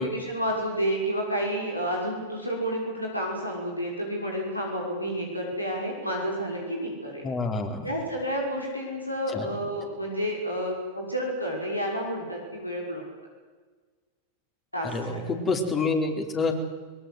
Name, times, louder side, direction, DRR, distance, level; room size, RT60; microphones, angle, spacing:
voice 1, 0.0-7.2 7.8-13.0 14.7-15.2, equal, 85° left, -1 dB, 6.1 m, -30 dB
voice 2, 7.2-7.9 9.3-9.5 14.8-16.5, left 3 dB, 20° left, 5 dB, 4.3 m, -27 dB
22.5 x 22.5 x 8.1 m, 1.4 s
figure-of-eight pair, 90°, 0 cm